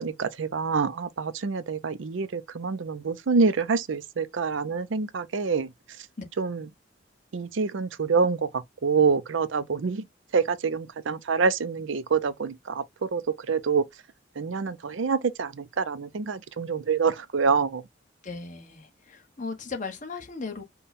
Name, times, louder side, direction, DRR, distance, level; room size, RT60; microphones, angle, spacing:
voice 1, 0.0-5.7 6.4-6.6 7.3-8.5 8.8-10.0 10.3-12.8 13.1-13.2 13.5-13.8 14.4-17.8, right 5 dB, 75° right, 0.5 m, -26 dB
voice 2, 18.2-20.6, left 4 dB, 40° left, 1.2 m, -37 dB
5.4 x 2.2 x 4.2 m
head